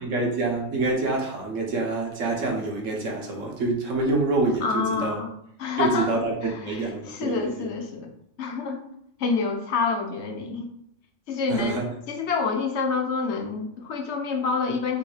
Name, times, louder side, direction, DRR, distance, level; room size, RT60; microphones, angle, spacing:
voice 1, 0.0-5.2 5.8-7.7 11.5-11.9, right 3 dB, 85° right, 0 dB, 1.4 m, -26 dB
voice 2, 4.6-5.3 5.6-6.1 6.4-8.1 8.4-8.8 9.2-10.7 11.3-11.8 12.1-15.0, left 4 dB, 65° left, 3 dB, 1.0 m, -27 dB
3.5 x 3.1 x 4.8 m, 0.71 s
omnidirectional pair, 1.3 m